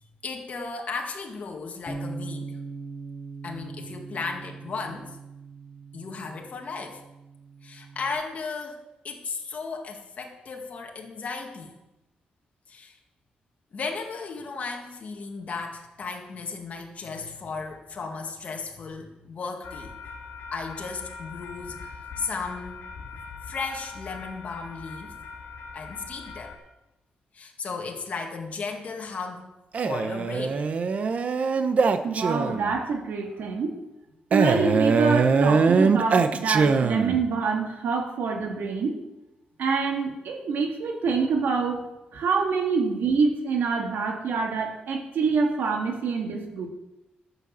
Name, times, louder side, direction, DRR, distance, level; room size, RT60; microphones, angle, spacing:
voice 1, 0.2-2.6 3.4-5.2 5.9-7.0 7.6-11.7 12.7-13.0 13.7-19.9 20.5-21.9 22.2-22.8 23.5-25.2 25.7-26.6 27.3-29.5 29.8-30.6, left 4 dB, 45° left, 2 dB, 1.8 m, -35 dB
Bass guitar, 1.9-8.1, right 4 dB, 20° left, 1.9 m, -40 dB
sound 1, 19.6-26.6, left 5 dB, 75° left, 2.1 m, -41 dB
Male speech man speaking, 29.7-32.7 34.3-37.3, right 5 dB, 45° right, 0.8 m, -22 dB
voice 2, 32.0-33.8 34.3-39.0 39.6-41.8 42.1-46.7, right 4 dB, 80° right, 2 dB, 1.9 m, -26 dB
13.0 x 6.9 x 7.3 m, 0.97 s
wide cardioid pair, 155°, 3 cm